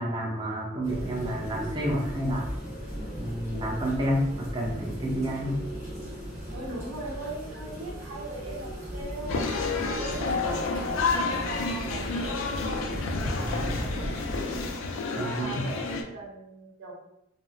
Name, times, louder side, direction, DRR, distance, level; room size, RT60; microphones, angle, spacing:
voice 1, 0.0-2.5 3.1-5.6 13.4-13.8 15.1-15.6, equal, 20° right, -2 dB, 0.5 m, -30 dB
sound 1, 0.8-14.7, equal, 40° right, 1.1 m, -37 dB
voice 2, 6.5-10.3 10.7-12.5 13.2-14.2 15.1-16.9, right 2 dB, 80° right, -5 dB, 0.8 m, -39 dB
sound 2, 9.3-16.0, left 3 dB, 85° left, 0.3 m, -30 dB
2.7 x 2.0 x 2.4 m, 0.83 s
head